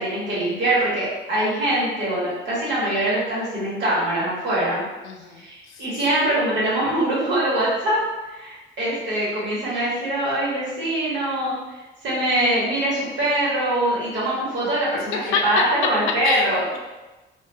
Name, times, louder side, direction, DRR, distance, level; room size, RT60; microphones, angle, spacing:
voice 1, 0.0-4.8 5.4-8.0 8.3-11.5 12.0-16.6, right 1 dB, 70° right, -8 dB, 1.5 m, -23 dB
voice 2, 5.0-6.0 6.3-6.4 15.2-15.7 16.2-16.5, left 5 dB, 85° left, 2 dB, 0.5 m, -27 dB
2.7 x 2.3 x 2.6 m, 1.1 s
cardioid pair, 90°, 20 cm